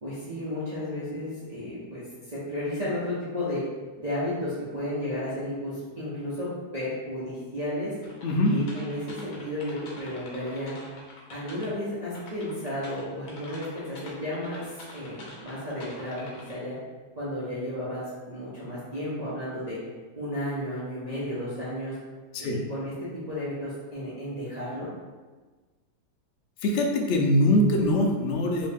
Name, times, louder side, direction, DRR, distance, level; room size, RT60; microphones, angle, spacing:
voice 1, 0.0-3.6 4.0-7.9 8.4-10.7 11.3-16.8 17.2-19.8 20.2-21.9 22.4-24.9, left 1 dB, 40° right, -11 dB, 0.6 m, -33 dB
sound 1, 8.0-11.8 12.1-16.5, left 2 dB, 65° left, 1.1 m, -46 dB
voice 2, 8.2-8.5 22.3-22.6 26.6-28.7, left 1 dB, 80° left, 2 dB, 0.6 m, -23 dB
3.1 x 2.7 x 3.4 m, 1.3 s
omnidirectional pair, 1.8 m